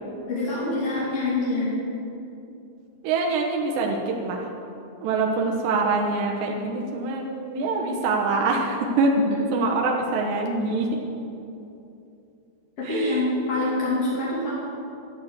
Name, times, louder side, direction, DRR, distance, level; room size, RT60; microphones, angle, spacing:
voice 1, 0.3-1.7 12.8-14.5, left 2 dB, 40° left, -7 dB, 2.6 m, -25 dB
voice 2, 3.0-4.5 5.0-9.1 9.5-10.9 12.8-13.3, right 3 dB, 70° right, 0 dB, 2.9 m, -25 dB
12.0 x 11.0 x 8.1 m, 2.7 s
omnidirectional pair, 5.8 m